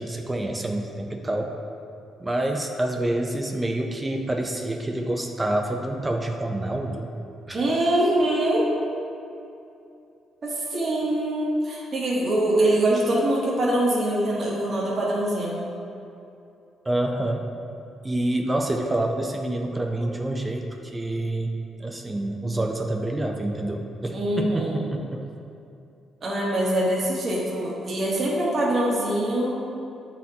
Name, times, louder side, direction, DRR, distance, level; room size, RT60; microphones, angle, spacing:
voice 1, 0.0-1.5 2.2-7.1 7.5-7.6 16.9-17.4 18.0-25.2, right 1 dB, 20° right, 2 dB, 0.5 m, -27 dB
voice 2, 7.5-8.7 10.4-15.6 24.1-24.8 26.2-29.6, right 1 dB, 45° right, -5 dB, 1.1 m, -23 dB
8.1 x 4.2 x 2.8 m, 2.7 s
cardioid pair, 90°, 0 cm